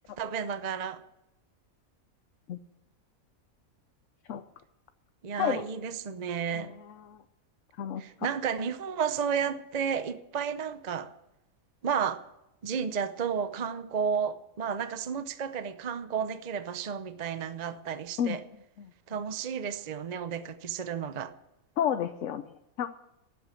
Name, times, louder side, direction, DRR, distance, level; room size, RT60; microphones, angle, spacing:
voice 1, 0.2-1.0 5.2-6.7 8.0-11.1 11.8-12.2 12.6-18.4 19.1-21.3, right 7 dB, 40° right, 0.6 m, -32 dB
voice 2, 6.5-7.2 7.8-8.0 18.2-18.4 18.8-18.9 21.8-23.0, left 9 dB, 65° left, 1.0 m, -31 dB
12.5 x 9.4 x 8.4 m
omnidirectional pair, 1.5 m